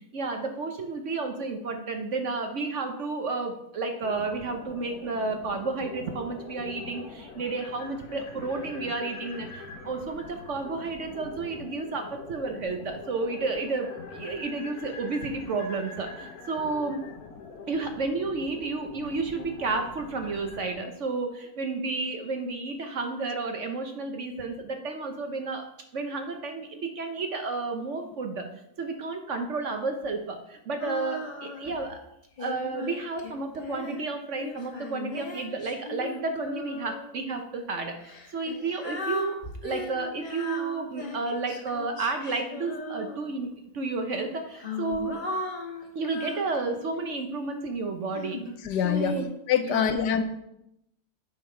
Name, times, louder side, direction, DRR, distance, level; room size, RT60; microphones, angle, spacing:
voice 1, 0.1-17.0 17.7-25.6 25.9-28.5 28.8-32.0 32.4-39.3 39.6-45.2 45.9-48.4 48.8-49.3 49.6-49.9, right 3 dB, 55° right, 5 dB, 1.0 m, -31 dB
sound 1, 4.0-20.7, left 4 dB, 65° left, 1.4 m, -44 dB
Female singing, 30.8-31.8 32.4-37.2 38.0-43.5 44.3-47.4 48.1-49.2, left 3 dB, 35° left, 1.0 m, -38 dB
voice 2, 48.6-49.2 49.5-50.2, left 8 dB, 85° left, 9 dB, 1.3 m, -24 dB
8.3 x 5.6 x 4.4 m, 0.81 s
omnidirectional pair, 1.8 m